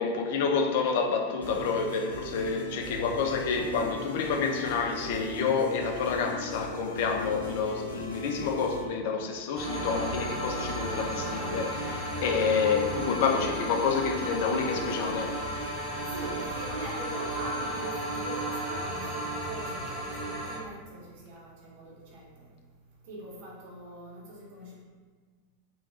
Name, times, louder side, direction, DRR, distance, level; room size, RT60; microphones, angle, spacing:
voice 1, 0.0-15.4 15.9-16.0, left 5 dB, 50° left, 3 dB, 0.4 m, -28 dB
sound 1, 1.4-8.8, equal, 80° left, 0.9 m, -39 dB
sound 2, 9.5-20.6, right 1 dB, 20° right, 0.9 m, -34 dB
voice 2, 16.1-22.5 23.0-24.8, right 1 dB, 50° right, -4 dB, 0.9 m, -42 dB
3.1 x 3.0 x 2.7 m, 1.5 s
figure-of-eight pair, 90°, 0 cm